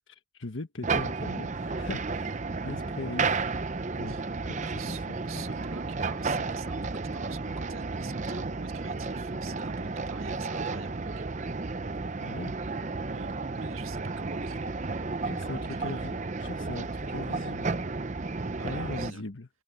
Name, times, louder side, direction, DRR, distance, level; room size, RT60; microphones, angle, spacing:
voice 1, 0.1-3.3 3.9-5.4 12.2-12.5 15.2-17.7 18.6-19.5, left 2 dB, 70° left, 1.3 m, -40 dB
sound 1, 0.8-19.1, right 3 dB, 35° right, 0.6 m, -32 dB
voice 2, 4.6-11.3 13.1-14.7 15.4-16.0 18.5-19.2, right 5 dB, 90° right, 1.7 m, -46 dB
head